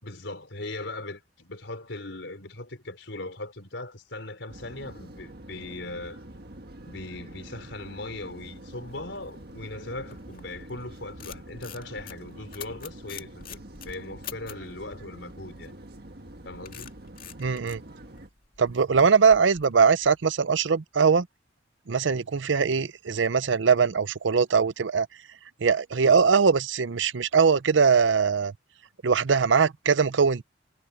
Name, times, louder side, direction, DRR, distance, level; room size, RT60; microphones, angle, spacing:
voice 1, 0.0-6.2 6.9-15.7 16.5-16.9, left 2 dB, 80° left, 4.2 m, -39 dB
sound 1, 4.5-18.3, right 1 dB, 55° right, 1.7 m, -46 dB
sound 2, 8.3-10.6 11.0-14.7 15.9-20.4, left 9 dB, 50° left, 2.1 m, -46 dB
voice 2, 17.4-17.8 18.6-21.3 21.9-25.1 25.6-28.5 29.0-30.4, right 5 dB, 85° right, 0.6 m, -21 dB
head